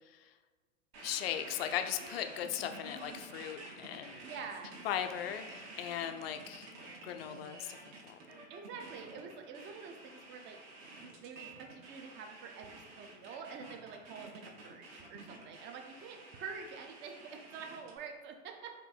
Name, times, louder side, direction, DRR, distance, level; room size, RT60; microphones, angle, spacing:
sound 1, 0.9-18.0, right 2 dB, 50° right, 1.2 m, -50 dB
voice 1, 1.0-4.2 4.8-6.7 7.0-7.8 8.0-8.2, left 10 dB, 50° left, 8 dB, 0.4 m, -38 dB
voice 2, 4.2-4.7 8.5-18.7, right 5 dB, 30° right, 4 dB, 0.6 m, -47 dB
4.3 x 2.6 x 4.2 m, 1.4 s
figure-of-eight pair, 95°, 41 cm